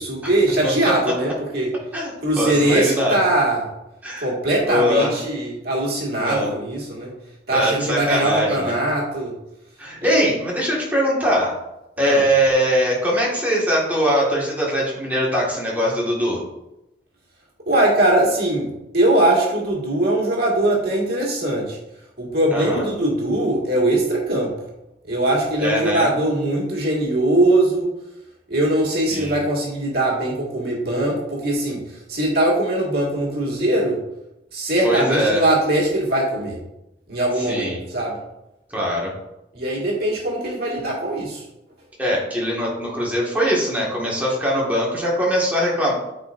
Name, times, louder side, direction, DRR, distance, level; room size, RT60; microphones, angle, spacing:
voice 1, 0.0-1.7 2.2-3.7 4.2-7.1 7.5-9.4 10.0-10.2 12.0-12.2 17.7-21.8 22.2-24.6 25.1-27.9 28.5-34.0 34.5-36.6 37.1-38.2 39.5-41.4, right 1 dB, 60° right, -3 dB, 1.8 m, -21 dB
voice 2, 2.4-3.2 4.0-4.3 4.7-5.1 6.2-6.5 7.5-8.7 9.8-11.6 12.0-16.4 22.5-22.8 25.6-26.1 29.1-29.3 34.8-35.4 37.5-37.8 38.7-39.1 42.0-45.9, equal, 10° right, -4 dB, 1.7 m, -21 dB
8.1 x 4.6 x 2.5 m, 0.89 s
head